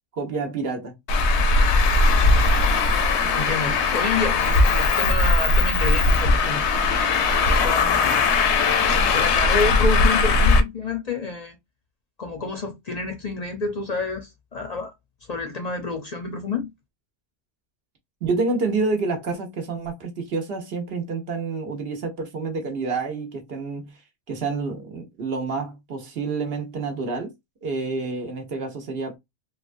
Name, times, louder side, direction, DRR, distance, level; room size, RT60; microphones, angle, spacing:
voice 1, 0.2-1.0 18.2-24.0 24.3-27.3 27.6-29.2, right 4 dB, 65° right, 1.1 m, -28 dB
Traffic noise roadway noise, 1.1-10.6, left 3 dB, 80° left, 0.9 m, -19 dB
voice 2, 3.2-6.6 7.5-8.2 8.9-11.6 12.2-14.9 15.3-16.7, left 3 dB, 45° left, 0.6 m, -29 dB
3.2 x 2.2 x 2.5 m
omnidirectional pair, 1.1 m